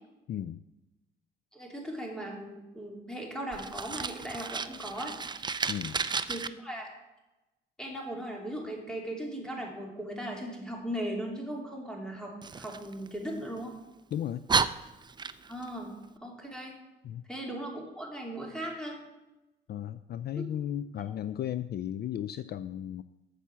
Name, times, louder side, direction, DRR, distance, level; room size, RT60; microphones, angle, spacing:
voice 1, 0.3-0.6 5.7-6.0 14.1-14.4 17.0-17.2 19.7-23.0, left 10 dB, 55° left, 14 dB, 0.4 m, -35 dB
voice 2, 1.5-5.1 6.3-6.9 7.8-13.7 15.5-15.9 16.2-16.7 17.3-19.0, right 1 dB, 5° left, -1 dB, 3.1 m, -38 dB
Fire, 3.5-6.5 12.4-13.6 14.1-14.2 14.5-15.7, right 5 dB, 20° right, 0.5 m, -32 dB
8.3 x 7.0 x 7.5 m, 1.0 s
cardioid pair, 90°, 20 cm